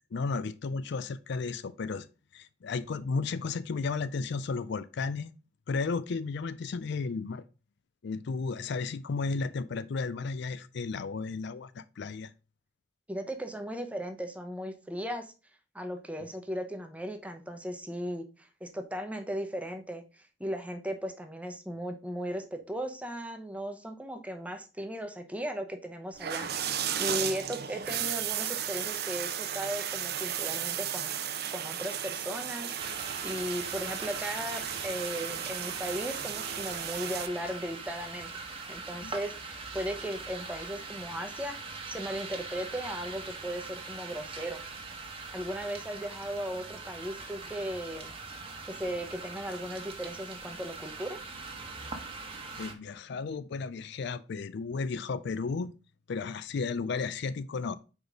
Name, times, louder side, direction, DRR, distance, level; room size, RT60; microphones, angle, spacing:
voice 1, 0.1-2.1 2.3-5.3 5.7-7.4 8.0-12.3 39.0-39.1 52.6-55.7 56.1-57.8, left 4 dB, 65° left, 0.4 m, -33 dB
voice 2, 13.1-15.3 15.7-31.1 31.5-38.3 38.7-44.6 45.3-48.1 48.7-51.2, equal, 5° right, 0.8 m, -37 dB
sound 1, 26.1-37.3, right 9 dB, 60° right, 0.7 m, -34 dB
sound 2, 32.8-52.7, right 4 dB, 30° right, 1.1 m, -42 dB
4.9 x 4.0 x 5.0 m
head